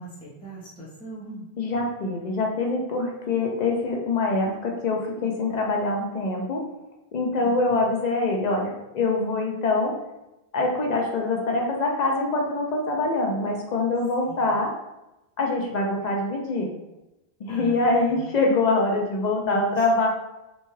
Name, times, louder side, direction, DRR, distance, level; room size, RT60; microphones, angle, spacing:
voice 1, 0.0-1.4 7.4-7.8 14.3-14.5 17.5-18.3 19.4-20.1, equal, 5° left, -8 dB, 0.5 m, -40 dB
voice 2, 1.6-6.6 7.1-10.0 10.5-14.7 15.4-16.7 17.4-20.1, left 2 dB, 55° left, 0 dB, 0.5 m, -24 dB
2.7 x 2.2 x 3.0 m, 0.95 s
omnidirectional pair, 1.1 m